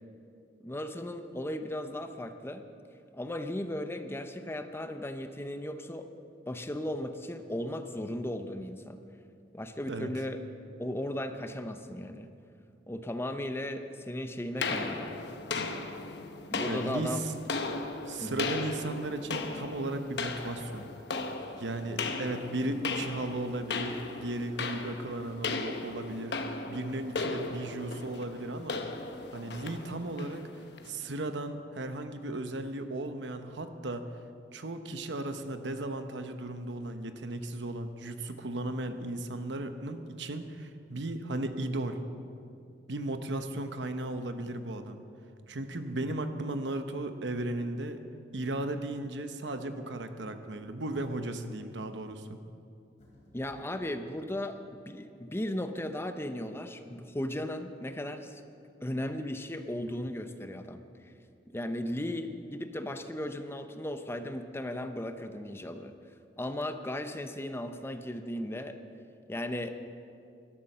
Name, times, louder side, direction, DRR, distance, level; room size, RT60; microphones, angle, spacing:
voice 1, 0.6-2.6 3.1-6.1 6.5-9.0 9.5-10.4 10.8-12.3 12.9-15.1 16.5-17.2 18.2-18.5 53.3-54.6 54.9-58.4 58.8-60.8 61.5-65.9 66.4-68.8 69.3-69.8, left 1 dB, 15° left, 8 dB, 0.6 m, -36 dB
sound 1, 14.6-31.0, left 3 dB, 65° left, 1.0 m, -37 dB
voice 2, 16.7-17.2 18.1-20.9 21.6-26.4 26.7-28.8 29.3-30.4 30.9-34.1 34.5-42.0 42.9-45.0 45.5-48.0 48.3-52.4, right 2 dB, 75° right, 8 dB, 0.9 m, -36 dB
sound 2, 53.0-54.1, equal, 40° left, 3.7 m, -58 dB
12.5 x 11.5 x 6.6 m, 2.5 s
head